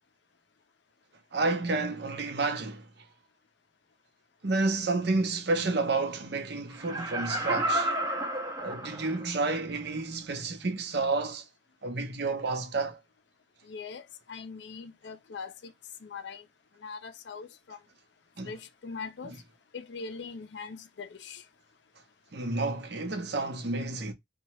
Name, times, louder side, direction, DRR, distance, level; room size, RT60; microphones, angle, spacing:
voice 1, 1.3-2.8 4.4-7.9 8.6-11.4 11.8-13.0 18.4-18.5 19.2-19.4 22.3-24.1, right 3 dB, 60° right, 0.7 m, -30 dB
Laughter, 6.7-9.4 9.9-10.0, right 1 dB, 20° right, 0.5 m, -31 dB
voice 2, 13.7-14.0 14.3-15.5 16.0-16.4 16.8-17.8 18.5-19.3 19.7-21.4, left 5 dB, 65° left, 0.4 m, -41 dB
2.8 x 2.2 x 2.9 m
head